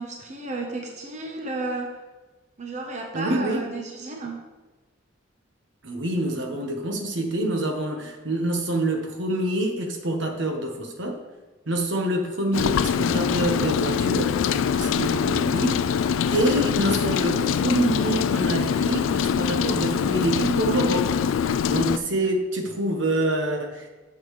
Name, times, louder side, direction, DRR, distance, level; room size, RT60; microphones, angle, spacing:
voice 1, 0.0-2.0 2.6-4.5 15.7-15.8 22.2-22.3, right 2 dB, 35° right, 1 dB, 0.9 m, -33 dB
voice 2, 3.1-3.6 5.8-11.2 11.7-15.9 16.3-21.1 21.4-23.9, right 1 dB, 65° right, 3 dB, 1.1 m, -26 dB
Rain, 12.5-22.0, left 7 dB, 75° left, 0.3 m, -23 dB
9.6 x 7.0 x 3.2 m, 1.2 s
head